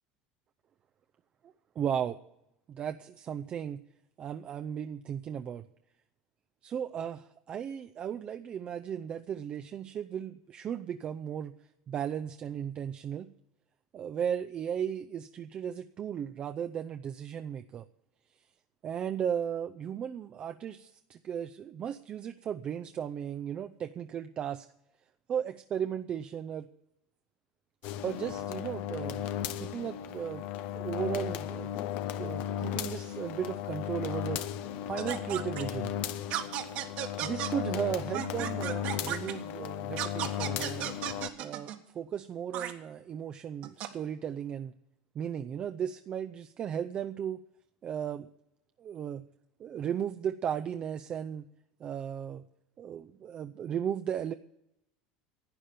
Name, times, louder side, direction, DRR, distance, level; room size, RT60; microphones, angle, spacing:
voice 1, 1.8-2.2 2.7-3.8 4.2-5.7 6.6-11.5 11.9-13.3 13.9-17.9 18.8-24.6 25.3-26.7 28.0-29.2 29.6-30.5 30.7-31.7 32.2-34.4 34.9-35.9 37.2-40.9 41.4-44.7 45.1-47.4 47.8-48.3 48.8-49.2 49.6-51.4 51.8-52.4 52.8-54.3, right 8 dB, 40° right, 7 dB, 0.5 m, -35 dB
sound 1, 27.8-41.3, left 10 dB, 65° left, 0.7 m, -36 dB
sound 2, 35.0-35.6 36.3-37.5 38.1-39.3 40.0-41.8 42.5-42.7 43.6-43.9, right 12 dB, 60° right, 1.5 m, -34 dB
11.5 x 8.5 x 9.2 m, 0.83 s
supercardioid pair, 105°, 3 cm